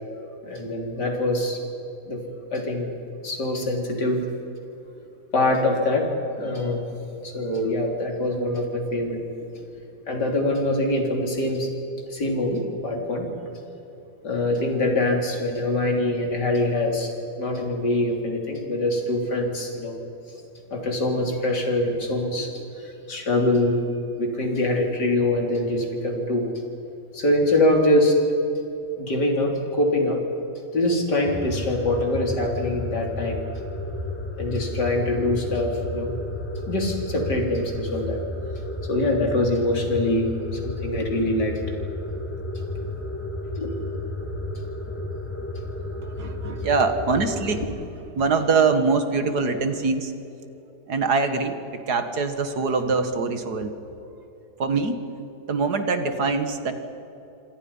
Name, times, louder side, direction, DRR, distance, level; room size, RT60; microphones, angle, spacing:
voice 1, 0.4-1.6 2.1-2.2 2.5-2.9 3.2-4.2 5.3-6.1 6.4-6.8 7.1-9.2 10.1-11.7 12.1-13.3 14.2-20.0 20.7-22.5 22.8-23.8 24.2-26.5 27.1-28.2 29.0-30.2 30.7-33.4 34.4-36.1 36.7-38.2 38.9-41.6 43.6-44.0, left 1 dB, 80° left, 2 dB, 4.1 m, -24 dB
sound 1, 31.3-47.6, left 1 dB, 10° left, 1.8 m, -32 dB
voice 2, 46.2-47.6 48.2-50.1 50.9-53.7 54.6-55.0 55.5-56.7, right 4 dB, 70° right, 8 dB, 2.3 m, -23 dB
28.0 x 25.5 x 5.6 m, 3.0 s
omnidirectional pair, 1.8 m